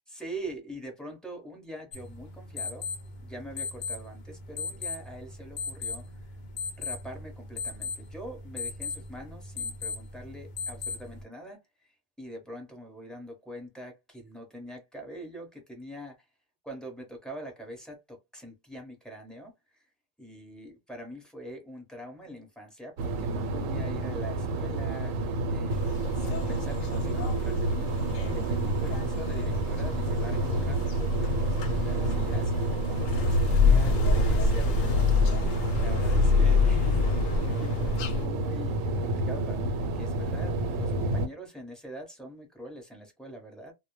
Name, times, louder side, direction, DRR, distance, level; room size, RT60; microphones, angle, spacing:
voice 1, 0.1-2.9 3.2-6.3 6.8-11.9 12.2-16.3 16.7-19.9 20.2-35.1 35.8-37.1 37.4-43.7, right 1 dB, ahead, 0.7 m, -44 dB
sound 1, 1.9-11.2, left 5 dB, 55° left, 0.6 m, -38 dB
sound 2, 23.0-41.3, right 2 dB, 80° right, 1.0 m, -30 dB
sound 3, 25.7-38.3, left 3 dB, 80° left, 1.0 m, -27 dB
2.2 x 2.0 x 3.0 m
omnidirectional pair, 1.4 m